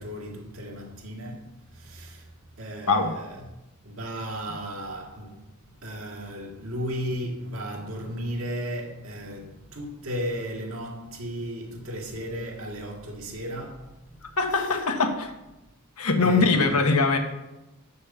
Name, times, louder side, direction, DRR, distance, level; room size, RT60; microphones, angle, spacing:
voice 1, 0.0-2.3 2.6-3.4 3.8-5.5 5.8-14.2 16.2-16.9, equal, 65° right, 2.2 m, -35 dB
voice 2, 14.4-15.3 16.0-17.2, left 3 dB, 85° left, 1.4 m, -22 dB
8.6 x 6.6 x 6.8 m
head